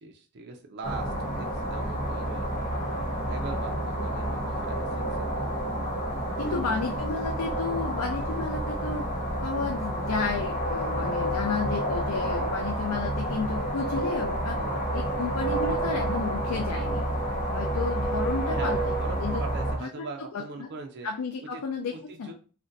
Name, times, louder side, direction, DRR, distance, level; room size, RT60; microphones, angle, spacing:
voice 1, 0.0-2.5 3.2-5.0 5.3-5.5 6.4-7.0 14.6-14.8 18.5-21.1 21.5-22.3, right 4 dB, 50° right, 3 dB, 0.5 m, -41 dB
sound 1, 0.8-19.8, right 1 dB, 35° left, 0.8 m, -29 dB
voice 2, 6.4-9.0 9.4-14.6 14.9-17.1 17.5-19.4 19.8-20.7 21.0-22.3, left 4 dB, 90° left, 3 dB, 0.4 m, -32 dB
2.5 x 2.2 x 3.9 m, 0.38 s
head